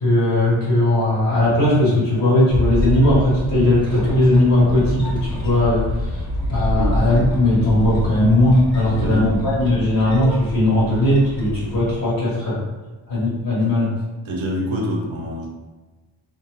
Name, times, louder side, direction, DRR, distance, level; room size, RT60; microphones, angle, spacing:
voice 1, 0.0-6.2 6.5-12.6 13.1-13.9, left 1 dB, 35° left, -8 dB, 1.3 m, -18 dB
sound 1, 2.5-9.8, left 1 dB, 65° left, 0.7 m, -26 dB
sound 2, 2.5-12.0, equal, 10° left, 0.6 m, -34 dB
voice 2, 6.7-7.3 9.0-9.5 14.2-15.5, equal, 75° right, -1 dB, 0.7 m, -27 dB
2.7 x 2.3 x 2.3 m, 1.2 s
wide cardioid pair, 130°, 48 cm